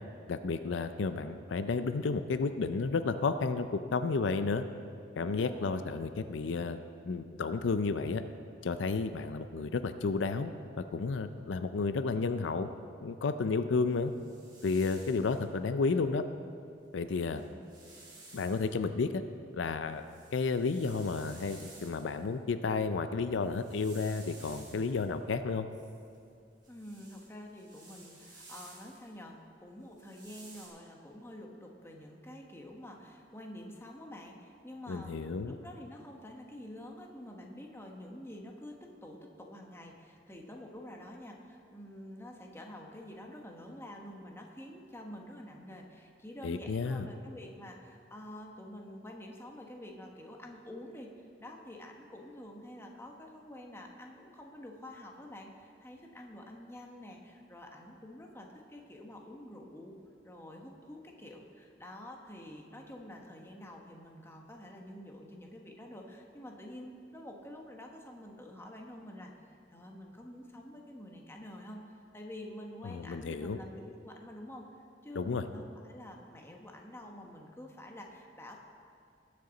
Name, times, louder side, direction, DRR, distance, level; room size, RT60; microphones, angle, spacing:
voice 1, 0.3-4.6 5.2-6.8 7.0-8.2 8.6-10.5 10.8-12.7 13.0-14.1 14.6-16.2 16.9-17.4 18.3-19.2 19.5-20.0 20.3-25.7 34.9-35.5 46.4-47.1 72.9-73.6 75.2-75.4, left 4 dB, 85° left, 10 dB, 0.5 m, -32 dB
voice 2, 5.1-5.9 17.2-17.6 26.7-35.1 35.4-60.0 60.2-71.8 72.1-74.7 75.0-78.6, left 1 dB, 15° left, 1 dB, 1.1 m, -48 dB
sound 1, 13.9-15.4 16.8-16.9 17.2-18.7 19.3-22.3 23.2-25.1 25.7-29.1 29.9-30.7, right 2 dB, 25° right, 2.4 m, -54 dB
19.5 x 6.7 x 4.0 m, 2.5 s
head